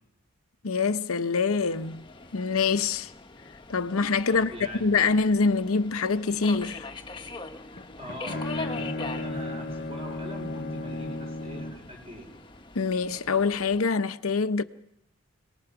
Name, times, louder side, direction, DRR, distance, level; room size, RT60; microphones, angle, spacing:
voice 1, 0.6-2.0 2.3-3.1 3.7-4.5 4.8-6.9 12.7-14.6, left 4 dB, 80° left, 0.7 m, -25 dB
Subway metro underground, 1.5-13.9, left 3 dB, 20° left, 1.1 m, -43 dB
voice 2, 4.3-5.0 8.0-12.3, equal, 25° right, 4.3 m, -41 dB
Bowed string instrument, 7.8-11.9, left 2 dB, 45° left, 0.8 m, -34 dB
26.0 x 19.5 x 5.9 m
head